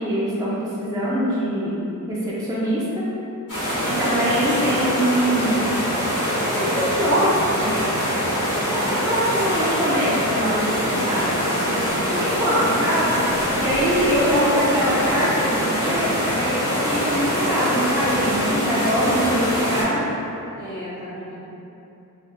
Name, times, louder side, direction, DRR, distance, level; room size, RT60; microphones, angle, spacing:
voice 1, 0.0-3.1 3.8-5.7 6.5-7.7 8.7-11.3 12.1-13.2 13.6-20.0, equal, 10° right, -8 dB, 0.4 m, -23 dB
sound 1, 3.5-19.8, equal, 80° left, 1.2 m, -23 dB
voice 2, 11.5-12.2 20.5-21.3, right 1 dB, 65° right, -9 dB, 1.2 m, -35 dB
3.2 x 2.5 x 2.3 m, 2.9 s
wide cardioid pair, 130°, 33 cm